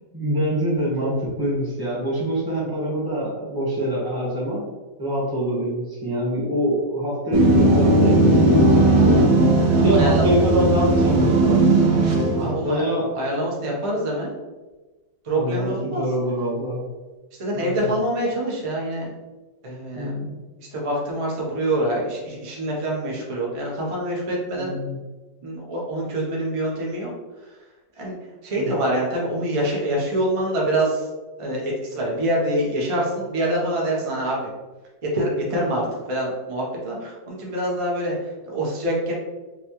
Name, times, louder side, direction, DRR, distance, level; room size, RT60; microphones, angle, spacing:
voice 1, 0.1-4.6 5.0-9.0 9.8-11.6 12.4-13.1 15.4-16.8 17.5-17.9 20.0-20.4 24.5-25.0 28.6-28.8, equal, 15° right, -6 dB, 0.8 m, -25 dB
sound 1, 7.3-12.6, right 2 dB, 85° right, 1.4 m, -17 dB
voice 2, 9.7-10.2 12.4-12.8 13.1-14.3 15.2-16.1 17.4-19.1 19.6-20.1 20.6-24.8 25.4-27.1 28.0-28.1 28.4-31.1 31.4-34.5 35.0-39.1, right 1 dB, 50° right, -3 dB, 0.3 m, -25 dB
4.0 x 2.2 x 2.9 m, 1.2 s
omnidirectional pair, 2.0 m